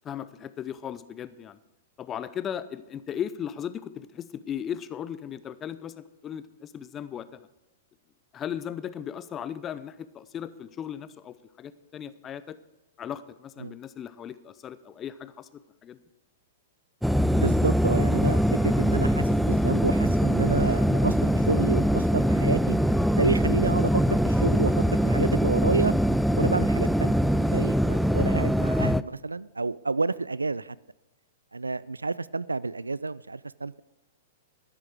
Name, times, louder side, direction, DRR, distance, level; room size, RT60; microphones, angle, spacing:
voice 1, 0.0-1.6 2.0-7.4 8.3-12.6 13.0-15.5 15.8-16.0, left 9 dB, 25° left, 15 dB, 0.7 m, -37 dB
sound 1, 17.0-29.0, equal, ahead, 0.3 m, -23 dB
voice 2, 17.3-22.8 23.2-25.9 26.3-30.8 31.5-33.8, right 3 dB, 85° right, 20 dB, 0.3 m, -29 dB
13.0 x 10.5 x 5.0 m, 0.99 s
figure-of-eight pair, 105°, 0 cm